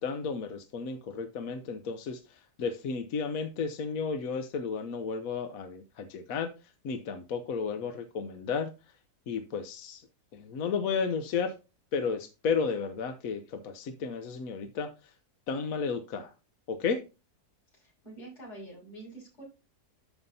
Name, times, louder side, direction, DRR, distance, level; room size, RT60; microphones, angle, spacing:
voice 1, 0.0-2.2 2.6-6.5 6.8-8.7 9.3-10.0 10.3-11.5 11.9-14.9 15.5-16.3 16.7-17.0, left 5 dB, 65° left, 1.2 m, -33 dB
voice 2, 17.7-19.4, right 2 dB, 80° left, 5.8 m, -46 dB
13.0 x 5.5 x 2.7 m
omnidirectional pair, 1.7 m